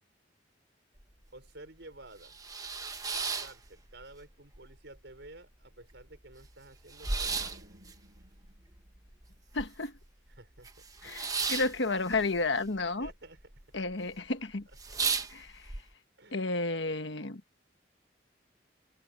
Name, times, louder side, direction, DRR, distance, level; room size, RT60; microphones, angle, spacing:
sound 1, 1.0-1.1 1.5-1.6 2.0-4.2 4.5-5.3 5.6-5.7 5.9-10.1 10.3-13.1 13.4-13.9 14.3-14.4 14.7-15.8, right 4 dB, 20° right, 1.1 m, -35 dB
voice 1, 1.3-2.4 3.1-7.7 10.4-10.7 11.0-11.1 11.4-11.5 12.8-13.4 14.9-15.0 16.2-16.5, right 2 dB, 65° right, 5.4 m, -52 dB
sound 2, 7.2-9.7, right 1 dB, 50° right, 7.8 m, -57 dB
voice 2, 9.5-9.9 11.0-13.1 13.7-14.7 15.3-15.6 16.3-17.4, left 3 dB, 70° left, 1.4 m, -32 dB
head